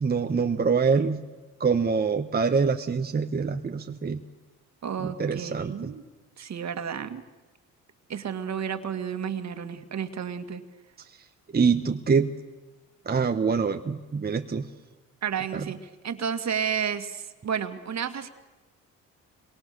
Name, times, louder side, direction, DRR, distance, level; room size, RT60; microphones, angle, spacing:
voice 1, 0.0-1.2 1.6-4.2 5.0-5.9 11.5-12.3 13.1-14.7 15.5-15.7, right 5 dB, 25° right, 6 dB, 1.2 m, -25 dB
voice 2, 4.8-6.0 6.4-7.2 8.1-10.6 15.2-18.3, right 7 dB, 50° right, 9 dB, 2.1 m, -31 dB
28.0 x 23.0 x 6.9 m, 1.2 s
supercardioid pair, 75°, 34 cm